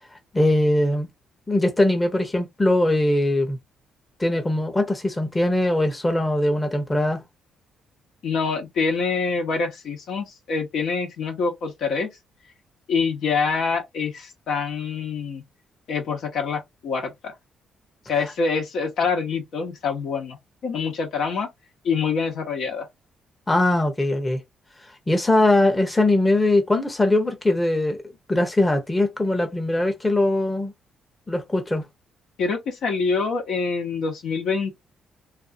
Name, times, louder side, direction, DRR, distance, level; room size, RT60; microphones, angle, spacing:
voice 1, 0.3-1.1 1.5-3.6 4.2-7.2 23.5-24.4 25.1-28.0 28.3-30.7 31.3-31.9, left 1 dB, 15° left, 0.8 m, -21 dB
voice 2, 8.2-12.1 12.9-15.4 15.9-17.3 18.1-20.4 20.6-21.5 21.8-22.9 32.4-34.7, left 5 dB, 70° left, 1.0 m, -25 dB
2.6 x 2.5 x 2.5 m
cardioid pair, 90°, 0 cm